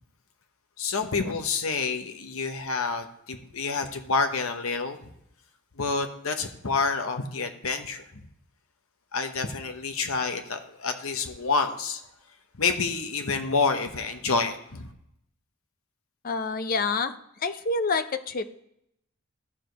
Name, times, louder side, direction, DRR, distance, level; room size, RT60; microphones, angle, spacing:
voice 1, 0.8-5.0 5.8-8.2 9.1-12.0 12.6-14.9, left 4 dB, 75° left, 6 dB, 1.1 m, -28 dB
voice 2, 16.2-17.1 17.4-18.5, left 4 dB, 40° left, 10 dB, 0.5 m, -27 dB
13.5 x 4.8 x 4.0 m, 0.77 s
head